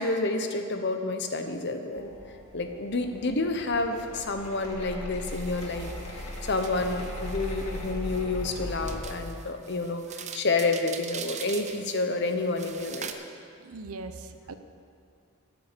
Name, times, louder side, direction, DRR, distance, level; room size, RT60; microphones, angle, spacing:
voice 1, 0.0-2.1 2.5-13.1, left 3 dB, 50° left, 6 dB, 1.0 m, -29 dB
sound 1, 1.9-9.0, left 1 dB, 85° left, 1.8 m, -38 dB
sound 2, 5.3-13.1, right 7 dB, 30° right, 0.6 m, -43 dB
voice 2, 13.6-14.5, right 3 dB, 80° right, 9 dB, 0.8 m, -40 dB
12.5 x 9.3 x 6.8 m, 2.3 s
head